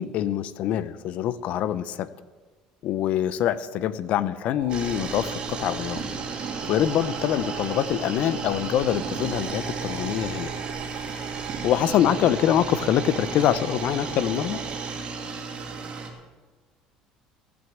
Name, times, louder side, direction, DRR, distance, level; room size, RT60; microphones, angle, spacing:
voice 1, 0.0-2.1 2.8-6.0 6.7-10.5 11.6-14.6, left 11 dB, 65° left, 16 dB, 0.7 m, -24 dB
sound 1, 4.6-14.9, right 11 dB, 70° right, 0.8 m, -39 dB
sound 2, 4.7-16.1, right 4 dB, 45° right, 2.6 m, -34 dB
17.5 x 6.3 x 7.3 m, 1.3 s
supercardioid pair, 105°, 3 cm